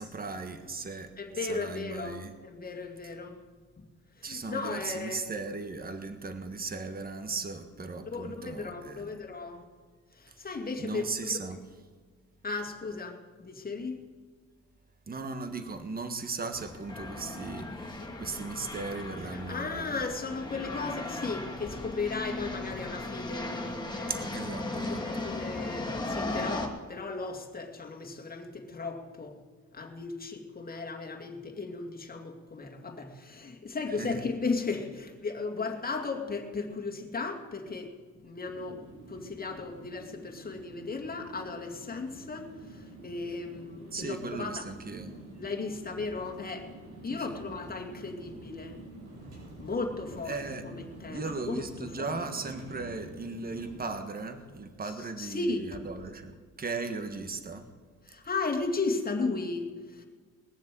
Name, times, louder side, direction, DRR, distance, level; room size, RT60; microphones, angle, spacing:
voice 1, 0.0-2.3 3.0-3.1 4.2-9.2 10.3-10.5 10.8-11.6 15.1-20.0 24.1-25.0 33.9-34.2 43.9-45.2 47.1-47.4 50.2-50.7 51.1-57.7, right 4 dB, 30° right, 7 dB, 1.5 m, -37 dB
voice 2, 1.2-3.4 3.8-3.9 4.2-5.5 8.1-9.6 10.1-11.3 12.4-14.0 19.3-24.2 24.9-29.4 29.7-37.9 38.2-44.5 45.4-46.7 47.0-48.8 49.6-50.4 50.6-51.6 52.0-52.2 55.2-55.6 58.1-60.1, left 3 dB, 30° left, 2 dB, 2.3 m, -36 dB
sound 1, 16.5-26.7, left 2 dB, 15° left, 2.3 m, -37 dB
sound 2, 38.4-53.9, right 1 dB, 85° right, 6.1 m, -48 dB
20.5 x 7.3 x 7.7 m, 1.5 s
cardioid pair, 90°, 30 cm